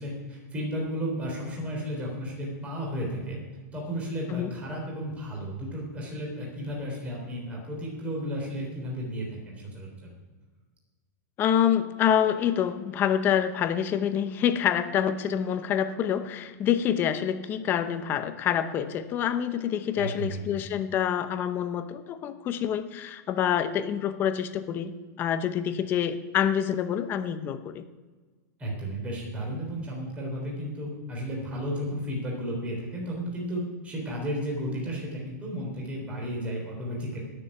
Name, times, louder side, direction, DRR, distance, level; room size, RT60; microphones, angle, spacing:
voice 1, 0.0-3.4 3.7-10.1 20.0-20.6 28.6-37.2, equal, 15° right, -2 dB, 3.6 m, -33 dB
voice 2, 11.4-27.8, left 9 dB, 20° left, 10 dB, 0.7 m, -27 dB
13.5 x 6.9 x 10.0 m, 1.4 s
supercardioid pair, 165°, 10 cm